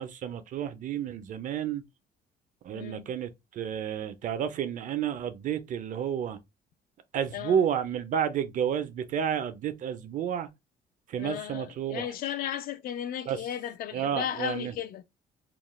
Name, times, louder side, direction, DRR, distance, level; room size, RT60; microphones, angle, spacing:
voice 1, 0.0-1.8 2.6-6.4 7.1-10.5 11.1-12.1 13.3-13.4 13.9-14.7, right 8 dB, 50° right, 0.4 m, -31 dB
voice 2, 2.7-3.1 7.3-7.6 11.2-15.0, left 9 dB, 60° left, 0.4 m, -35 dB
2.3 x 2.0 x 2.9 m
cardioid pair, 110°, 17 cm